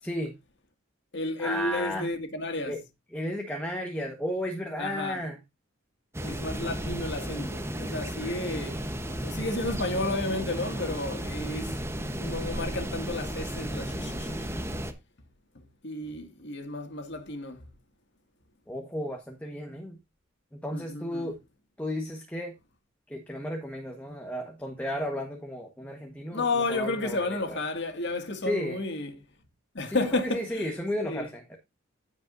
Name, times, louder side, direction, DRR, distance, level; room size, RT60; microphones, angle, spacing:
voice 1, 0.0-0.3 1.4-2.1 2.6-2.8 3.1-5.4 18.7-20.0 20.6-21.4 21.8-22.5 23.1-27.6 28.4-28.8 29.9-31.6, equal, 5° left, 1.2 m, -33 dB
voice 2, 1.1-2.7 4.8-5.2 6.2-8.8 9.2-11.7 12.2-14.5 15.6-17.7 20.7-21.3 26.3-29.2 29.7-30.7 31.0-31.3, left 2 dB, 60° left, 2.0 m, -32 dB
sound 1, 6.1-14.9, equal, 15° right, 0.9 m, -34 dB
15.5 x 5.3 x 2.6 m
head